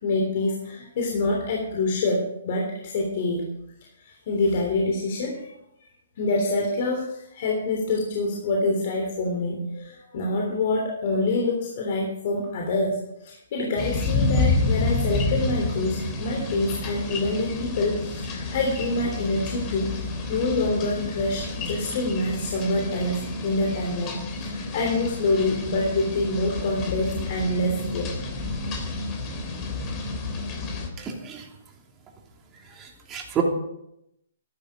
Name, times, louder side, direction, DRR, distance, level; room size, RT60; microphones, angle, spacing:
voice 1, 0.0-3.5 4.0-5.4 6.2-19.9 20.3-28.1, left 2 dB, 50° left, 0 dB, 3.4 m, -26 dB
sound 1, 13.8-30.9, left 3 dB, 25° left, 3.2 m, -29 dB
voice 2, 31.0-31.4 32.8-33.4, right 9 dB, 20° right, 1 dB, 2.9 m, -30 dB
14.0 x 12.5 x 5.2 m, 0.81 s
hypercardioid pair, 135°, 0 cm